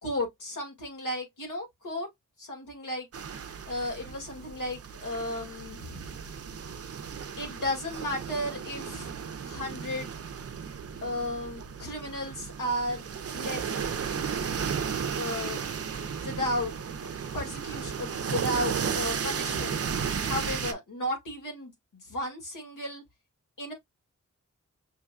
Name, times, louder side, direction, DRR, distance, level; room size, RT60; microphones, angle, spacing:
voice 1, 0.0-2.1 2.4-3.1 3.7-6.1 7.4-9.1 9.4-10.1 11.0-13.7 15.2-15.7 16.1-16.7 17.0-19.8 20.2-23.0 23.6-23.7, left 1 dB, 90° left, 2.0 m, -34 dB
sound 1, 3.1-20.7, right 7 dB, 50° right, 0.6 m, -34 dB
6.2 x 2.2 x 2.4 m
wide cardioid pair, 75°, 30 cm